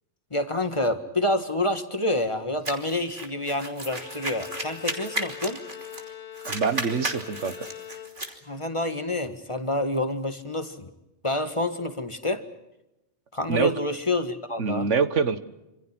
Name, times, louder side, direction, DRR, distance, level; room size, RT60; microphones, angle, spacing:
voice 1, 0.3-5.6 8.5-10.9 11.2-12.4 13.3-14.9, left 1 dB, 25° left, 8 dB, 1.8 m, -28 dB
sound 1, 2.6-6.1 6.3-8.4, right 2 dB, 45° right, 3.3 m, -34 dB
Bowed string instrument, 3.9-8.6, left 9 dB, 40° left, 1.2 m, -42 dB
voice 2, 6.4-7.7 13.5-13.7 14.6-15.4, right 5 dB, 75° right, 12 dB, 1.6 m, -25 dB
27.0 x 27.0 x 6.1 m, 0.94 s
omnidirectional pair, 1.2 m